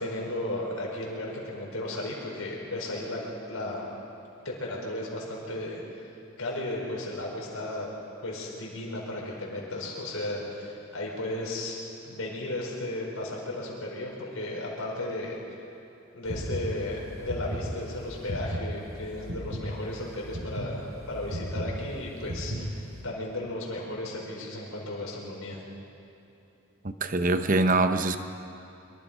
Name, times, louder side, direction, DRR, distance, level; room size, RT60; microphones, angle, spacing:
voice 1, 0.0-3.2 3.5-3.8 4.4-5.8 6.4-7.9 8.2-11.8 12.0-15.6 16.1-25.6, left 1 dB, 90° left, 5.0 m, -35 dB
sound 1, 16.2-23.0, equal, 85° right, 5.8 m, -35 dB
voice 2, 27.0-28.2, right 2 dB, 40° right, 0.9 m, -23 dB
24.5 x 24.0 x 5.2 m
head